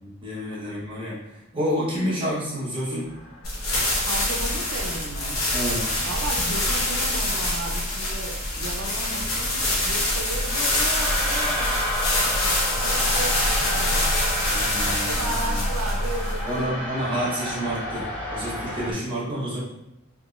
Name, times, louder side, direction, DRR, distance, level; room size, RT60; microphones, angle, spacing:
voice 1, 0.0-3.1 5.5-5.9 14.4-15.6 16.5-19.6, equal, 25° right, -7 dB, 1.0 m, -29 dB
Eerie ambience, 3.0-18.9, equal, 60° left, 1.3 m, -33 dB
sound 1, 3.4-16.6, left 1 dB, 75° left, 0.9 m, -25 dB
voice 2, 4.0-5.5 6.0-11.8 12.1-14.1 14.8-16.9 18.9-19.1, right 3 dB, 80° right, 0 dB, 0.5 m, -35 dB
3.6 x 3.0 x 2.4 m, 0.88 s
head